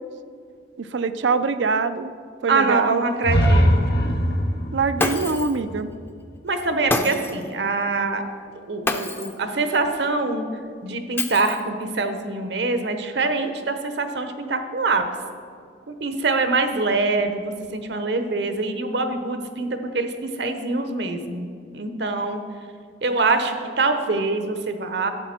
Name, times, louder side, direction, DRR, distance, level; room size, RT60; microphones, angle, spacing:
voice 1, 0.8-2.1 2.4-3.0 4.7-5.9, right 4 dB, 85° right, 11 dB, 0.5 m, -23 dB
voice 2, 2.5-3.9 6.4-8.2 8.7-10.5 10.8-15.0 16.0-19.7 19.9-21.5 21.7-22.4 23.0-25.1, right 3 dB, 65° right, 7 dB, 0.9 m, -24 dB
sound 1, 3.2-7.1, equal, 60° left, 1.0 m, -22 dB
Shatter, 5.0-5.6 6.9-7.5 8.9-9.4 11.2-11.8, left 2 dB, 10° left, 0.5 m, -26 dB
12.0 x 7.9 x 4.4 m, 2.2 s
head